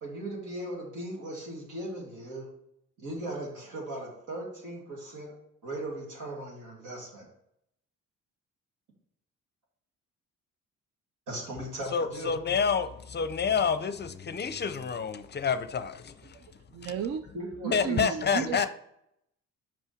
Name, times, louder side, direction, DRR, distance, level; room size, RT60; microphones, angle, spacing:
voice 1, 0.0-2.5 3.0-5.3 5.6-7.3 11.3-12.3 17.3-18.0 18.4-18.7, right 1 dB, 85° right, 2.6 m, -38 dB
voice 2, 11.9-16.4 16.8-16.9 17.7-18.7, left 6 dB, 35° left, 0.5 m, -28 dB
voice 3, 16.2-17.2 17.6-18.7, right 8 dB, 50° right, 0.5 m, -34 dB
5.5 x 5.4 x 5.0 m
cardioid pair, 90°, 30 cm